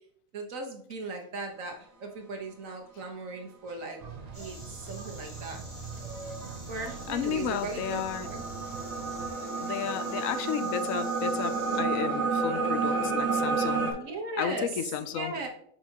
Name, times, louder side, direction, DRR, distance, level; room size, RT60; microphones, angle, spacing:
voice 1, 0.3-4.0 4.3-5.6 6.7-8.4 13.9-14.7 15.1-15.5, right 3 dB, 80° right, 2 dB, 1.6 m, -38 dB
sound 1, 4.0-9.3, right 4 dB, 40° right, 0.6 m, -43 dB
Insect, 4.3-11.8, right 1 dB, 20° right, 2.1 m, -49 dB
sound 2, 5.3-13.9, right 4 dB, 55° right, 1.9 m, -31 dB
voice 2, 7.1-8.3 9.6-14.0 14.4-15.5, left 9 dB, 90° left, 11 dB, 1.0 m, -33 dB
7.2 x 5.5 x 2.9 m, 0.66 s
omnidirectional pair, 1.4 m